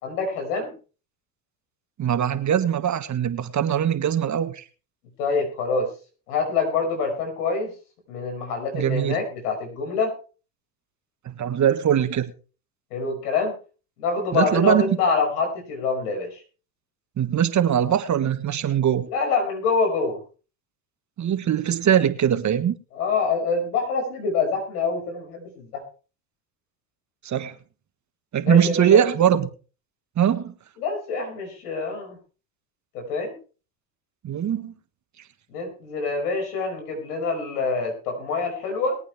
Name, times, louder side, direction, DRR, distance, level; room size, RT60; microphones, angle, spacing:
voice 1, 0.0-0.7 5.2-5.9 6.3-7.7 8.1-10.1 12.9-13.5 14.0-16.4 19.1-20.2 22.9-25.8 28.4-29.0 30.8-32.2 32.9-33.3 35.5-39.0, left 4 dB, 80° left, 5.8 m, -26 dB
voice 2, 2.0-4.6 8.7-9.2 11.2-12.3 14.3-15.0 17.2-19.1 21.2-22.7 27.2-27.5 28.3-29.5 30.2-30.5 34.2-34.7, right 9 dB, 40° right, 1.4 m, -21 dB
22.0 x 8.8 x 3.4 m
hypercardioid pair, 75°, 46 cm